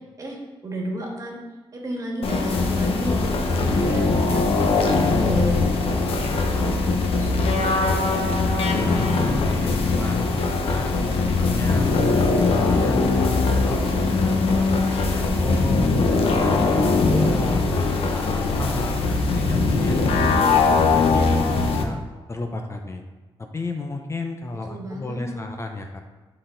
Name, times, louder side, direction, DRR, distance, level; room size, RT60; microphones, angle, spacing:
voice 1, 0.6-1.4 1.7-7.8 24.7-25.4, right 1 dB, 35° right, -1 dB, 1.8 m, -33 dB
sound 1, 2.2-21.8, left 3 dB, 85° left, 0.9 m, -21 dB
voice 2, 8.0-13.8 14.1-21.3 21.7-22.0 22.3-23.0 23.4-26.0, left 2 dB, 30° left, 4 dB, 0.7 m, -33 dB
10.0 x 4.2 x 3.9 m, 1.2 s
cardioid pair, 105°, 10 cm